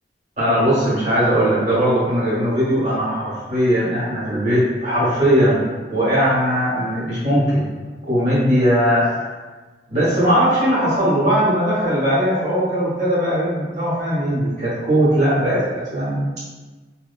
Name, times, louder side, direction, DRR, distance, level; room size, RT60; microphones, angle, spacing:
voice 1, 0.4-5.6 5.9-7.6 8.1-9.2 9.9-16.2, equal, 40° right, -9 dB, 1.0 m, -19 dB
2.8 x 2.1 x 2.4 m, 1.3 s
head